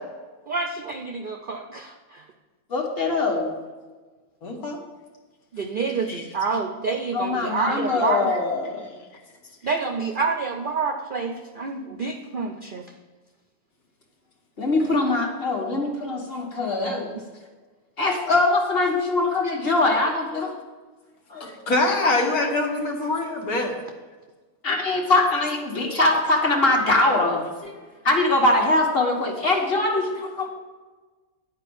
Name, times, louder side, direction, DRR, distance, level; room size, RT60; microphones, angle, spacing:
voice 1, 0.5-2.3 5.5-8.3 9.6-12.9 14.8-14.9 21.7-21.8, right 4 dB, 60° right, 4 dB, 0.5 m, -28 dB
voice 2, 2.7-3.5 7.1-8.8 14.6-17.1 18.0-20.5 21.3-21.5 22.0-22.1 24.6-27.7 28.0-30.5, left 2 dB, 40° left, 1 dB, 1.7 m, -22 dB
voice 3, 4.4-4.8 6.1-6.2 21.4-23.7, left 2 dB, 80° left, 1 dB, 1.8 m, -24 dB
10.5 x 4.9 x 7.0 m, 1.3 s
omnidirectional pair, 1.6 m